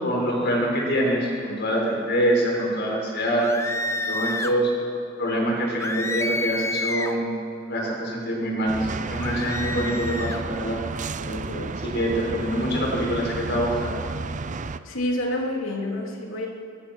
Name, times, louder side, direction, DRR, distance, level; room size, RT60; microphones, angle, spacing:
voice 1, 0.0-3.5 4.1-4.7 5.2-7.3 7.7-10.8 11.8-13.9, equal, 55° left, -1 dB, 6.3 m, -25 dB
sound 1, 3.4-4.6 5.8-7.2 9.2-10.4, left 2 dB, 15° left, 0.8 m, -29 dB
sound 2, 8.7-14.8, right 3 dB, 40° right, 0.6 m, -32 dB
voice 2, 11.3-11.8 14.8-16.5, left 1 dB, 75° left, 0 dB, 3.5 m, -29 dB
22.5 x 21.0 x 6.4 m, 2.4 s
head